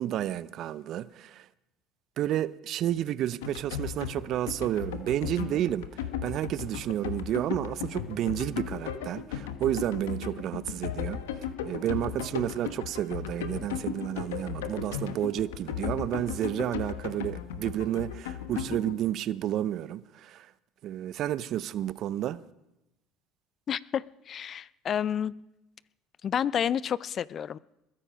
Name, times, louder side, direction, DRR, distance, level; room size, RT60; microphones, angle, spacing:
voice 1, 0.0-1.5 2.2-11.2 11.6-20.5 20.8-22.4, right 12 dB, 55° right, 0.6 m, -31 dB
sound 1, 3.4-19.0, left 9 dB, 85° left, 1.1 m, -36 dB
voice 2, 23.7-25.3 26.2-27.6, left 9 dB, 45° left, 0.4 m, -30 dB
21.5 x 10.0 x 5.2 m
hypercardioid pair, 75°, 0 cm